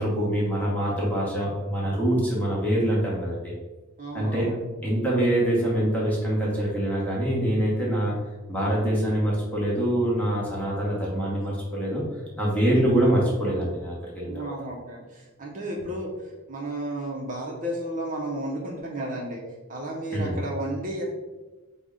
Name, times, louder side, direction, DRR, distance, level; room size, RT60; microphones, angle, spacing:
voice 1, 0.0-3.5 4.1-4.5 4.8-8.1 8.5-12.0 12.4-14.5 20.1-20.3, right 1 dB, 5° left, -6 dB, 1.0 m, -24 dB
voice 2, 4.0-4.7 14.2-19.4 19.7-21.0, right 1 dB, 40° right, -3 dB, 0.6 m, -33 dB
5.2 x 2.1 x 3.6 m, 1.2 s
head